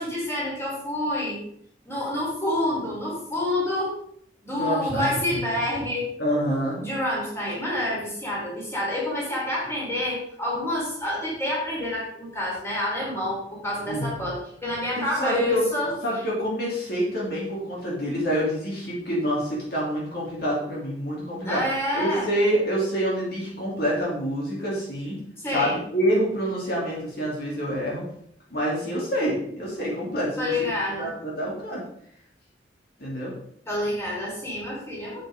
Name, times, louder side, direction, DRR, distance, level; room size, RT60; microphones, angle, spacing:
voice 1, 0.0-1.4 1.9-4.0 4.4-6.1 6.8-15.9 21.5-22.3 25.4-25.8 30.4-31.1 33.7-35.2, left 1 dB, 15° left, -5 dB, 3.9 m, -28 dB
voice 2, 4.5-5.1 6.2-6.8 13.9-14.1 15.1-15.7 16.0-21.6 21.9-25.2 25.5-28.0 28.5-30.7 31.0-31.8 33.0-33.3, equal, 55° left, -5 dB, 3.2 m, -27 dB
8.9 x 8.2 x 3.8 m, 0.68 s
head